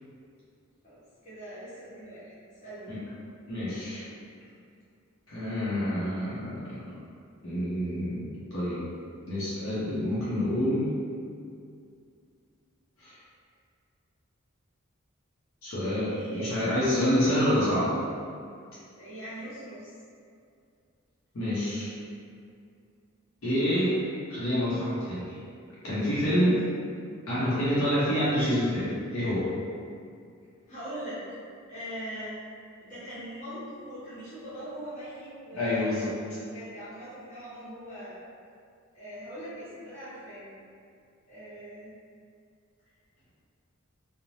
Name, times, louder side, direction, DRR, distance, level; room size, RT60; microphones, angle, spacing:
voice 1, 0.8-2.9 16.0-16.7 19.0-19.9 26.3-26.5 30.7-31.2 31.7-32.4 32.8-38.2 38.9-40.5 41.3-41.9, equal, 35° left, -12 dB, 1.1 m, -41 dB
voice 2, 3.5-4.0 5.3-6.9 7.4-8.9 9.3-10.9 13.0-13.2 15.6-18.0 21.3-21.9 23.4-24.0 24.3-25.3 25.8-26.6 27.3-29.5 35.5-36.1, equal, 75° left, -11 dB, 0.7 m, -27 dB
3.1 x 2.1 x 2.6 m, 2.3 s
head